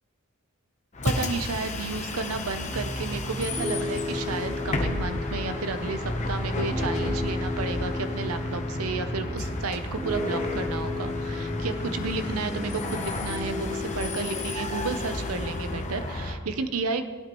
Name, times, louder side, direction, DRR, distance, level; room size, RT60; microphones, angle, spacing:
Bus, 0.9-16.4, left 2 dB, 35° left, 0.9 m, -32 dB
voice 1, 1.0-17.0, right 4 dB, 80° right, 9 dB, 0.7 m, -32 dB
Piano, 2.7-15.8, left 2 dB, 10° right, 0.7 m, -34 dB
18.0 x 9.0 x 3.0 m, 1.5 s
head